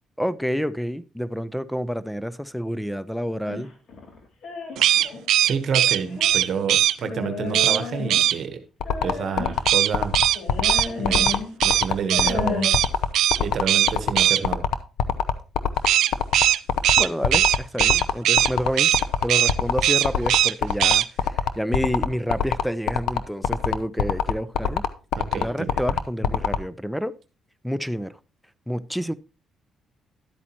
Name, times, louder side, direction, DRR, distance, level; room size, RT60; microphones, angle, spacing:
voice 1, 0.2-3.7 17.0-18.9 19.2-24.8 25.3-27.1 27.6-28.2 28.7-29.1, equal, ahead, 0.5 m, -28 dB
sound 1, 3.5-5.2 5.8-6.4 7.0-8.4 8.8-9.6 10.3-11.5 12.0-12.7, left 4 dB, 60° left, 2.6 m, -32 dB
sound 2, 4.8-6.9 7.5-7.8 8.1-8.4 9.7-12.3 12.6-12.9 13.1-13.4 13.7-14.4 15.9-18.5 18.8-19.0 19.3-19.5 19.8-20.5 20.8-21.0, right 12 dB, 80° right, 0.4 m, -19 dB
voice 2, 5.4-8.6 9.0-10.2 11.0-11.4 11.6-12.7 13.4-14.7 25.1-25.8, right 6 dB, 60° right, 1.0 m, -29 dB
sound 3, 8.8-26.6, left 8 dB, 85° left, 0.6 m, -23 dB
11.5 x 8.4 x 2.9 m
cardioid pair, 90°, 0 cm